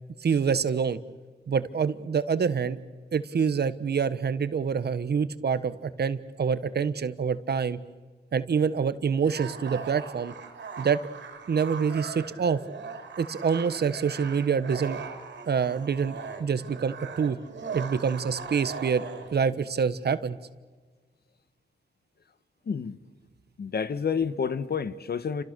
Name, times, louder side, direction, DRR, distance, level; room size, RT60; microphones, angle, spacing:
voice 1, 0.2-1.0 1.5-2.8 3.1-7.8 8.3-10.3 10.8-11.0 11.5-12.6 13.2-15.0 15.5-17.4 17.7-20.4, right 6 dB, 65° right, 1.2 m, -26 dB
sound 1, 9.2-19.4, right 5 dB, 85° right, 3.7 m, -40 dB
voice 2, 22.7-23.0 23.6-25.4, left 6 dB, 60° left, 1.3 m, -29 dB
29.5 x 26.5 x 6.8 m
cardioid pair, 75°, 18 cm